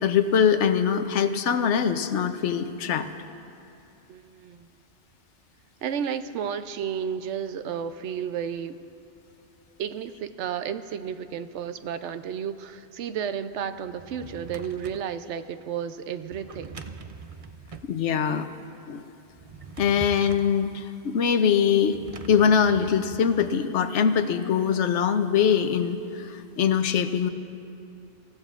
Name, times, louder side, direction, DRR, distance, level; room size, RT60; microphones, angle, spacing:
voice 1, 0.0-3.1 17.8-18.5 18.9-19.0 19.8-22.0 22.3-27.3, left 7 dB, 90° left, 9 dB, 1.0 m, -23 dB
voice 2, 4.1-4.7 5.8-8.8 9.8-16.8, right 8 dB, 85° right, 11 dB, 0.9 m, -32 dB
Drawer open or close, 13.8-15.1 16.3-17.9 19.3-20.6 21.9-23.6, right 5 dB, 45° right, 0.5 m, -43 dB
26.0 x 15.0 x 2.4 m, 2.6 s
omnidirectional pair, 1.2 m